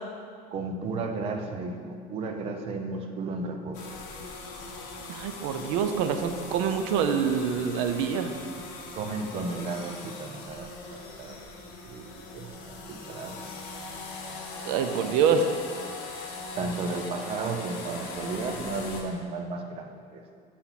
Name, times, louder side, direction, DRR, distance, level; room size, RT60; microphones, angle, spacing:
voice 1, 0.5-3.9 8.9-11.4 11.8-13.5 16.5-20.2, right 3 dB, 35° right, 5 dB, 0.6 m, -34 dB
sound 1, 3.7-19.0, left 3 dB, 60° left, 1.2 m, -40 dB
voice 2, 5.1-8.3 14.7-15.5, right 7 dB, 80° right, 7 dB, 0.7 m, -26 dB
7.9 x 4.2 x 5.9 m, 2.2 s
cardioid pair, 175°, 17 cm